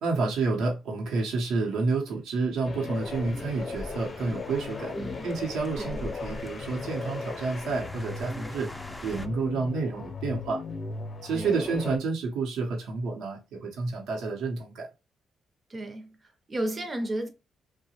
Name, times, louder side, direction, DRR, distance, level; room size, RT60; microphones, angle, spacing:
voice 1, 0.0-5.0 5.2-8.7 9.0-10.6 11.2-14.9, right 4 dB, 85° right, 0.8 m, -29 dB
sound 1, 2.6-12.0, left 4 dB, 50° left, 0.6 m, -37 dB
sound 2, 2.9-9.3, left 1 dB, 10° left, 0.4 m, -43 dB
voice 2, 5.0-5.3 5.8-6.0 11.3-11.6 15.7-17.3, right 1 dB, 35° right, 0.6 m, -34 dB
2.8 x 2.1 x 2.8 m
cardioid pair, 70°, 0 cm